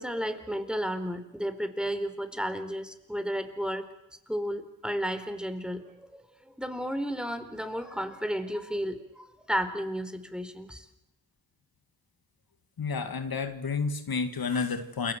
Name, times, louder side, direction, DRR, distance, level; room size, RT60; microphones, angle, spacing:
voice 1, 0.0-3.9 4.3-10.9, equal, ahead, 9 dB, 4.4 m, -33 dB
voice 2, 12.8-15.1, left 5 dB, 80° left, 8 dB, 2.3 m, -30 dB
29.5 x 22.0 x 8.1 m, 0.85 s
cardioid pair, 45°, 36 cm